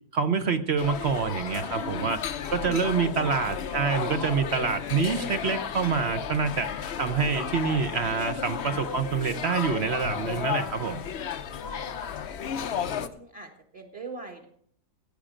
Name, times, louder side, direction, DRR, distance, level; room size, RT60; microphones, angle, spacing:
voice 1, 0.1-2.2 2.5-6.7 7.0-11.0, right 5 dB, 50° right, 8 dB, 1.0 m, -26 dB
sound 1, 0.8-13.1, left 8 dB, 55° left, 0.8 m, -33 dB
voice 2, 2.6-3.3 12.9-14.5, right 3 dB, 25° right, 1 dB, 1.4 m, -42 dB
15.5 x 8.9 x 5.1 m, 0.63 s
omnidirectional pair, 1.7 m